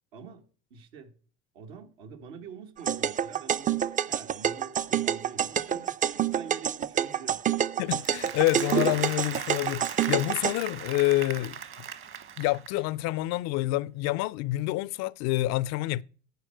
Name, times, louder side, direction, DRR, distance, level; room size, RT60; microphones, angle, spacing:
voice 1, 0.1-0.4 0.7-1.1 1.5-7.4, right 6 dB, 80° right, 1.7 m, -46 dB
sound 1, 2.8-10.5, right 9 dB, 25° right, 0.5 m, -27 dB
voice 2, 7.8-11.6 12.4-16.0, left 18 dB, 60° left, 0.5 m, -27 dB
Applause, 7.9-12.9, right 8 dB, 45° right, 1.3 m, -38 dB
10.5 x 4.5 x 7.6 m
hypercardioid pair, 65°, 30 cm